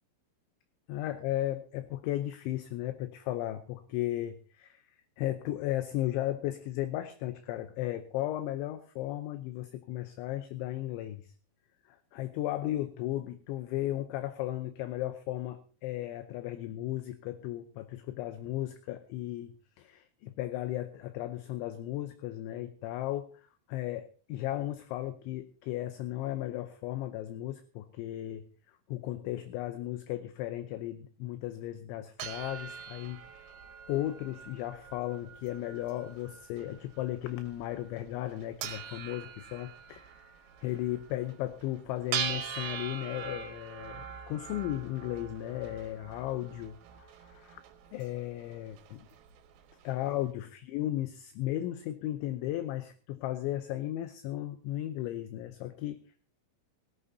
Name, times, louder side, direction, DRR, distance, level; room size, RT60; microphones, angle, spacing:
voice 1, 0.9-4.8 5.2-11.3 11.9-28.4 28.9-33.2 33.9-40.1 40.6-47.6 47.9-49.1 49.8-56.0, left 14 dB, 80° left, 10 dB, 2.8 m, -35 dB
sound 1, 32.2-50.1, right 8 dB, 75° right, 3.9 m, -43 dB
17.5 x 17.0 x 2.7 m, 0.37 s
omnidirectional pair, 5.9 m